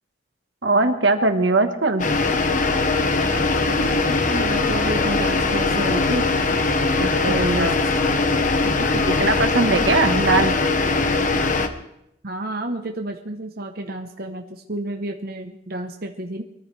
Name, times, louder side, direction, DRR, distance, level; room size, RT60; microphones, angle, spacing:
voice 1, 0.6-2.1 7.0-7.8 9.0-10.5, right 3 dB, 80° right, 7 dB, 1.5 m, -20 dB
sound 1, 2.0-11.7, left 3 dB, 45° left, 1.1 m, -21 dB
voice 2, 3.8-6.2 7.3-7.7 8.6-9.0 12.2-14.4 14.7-16.4, right 1 dB, 55° right, 3 dB, 1.0 m, -29 dB
23.5 x 14.0 x 3.4 m, 0.78 s
head